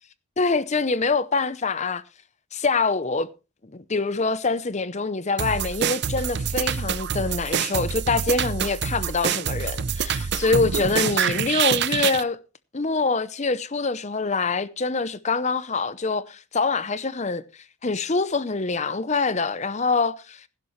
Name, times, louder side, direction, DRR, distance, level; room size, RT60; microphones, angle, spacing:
voice 1, 0.4-2.0 2.5-3.3 3.7-12.4 12.7-17.4 17.8-20.5, left 4 dB, 30° left, 0.7 m, -25 dB
sound 1, 5.4-12.2, right 7 dB, 50° right, 0.6 m, -26 dB
16.5 x 11.5 x 3.2 m
head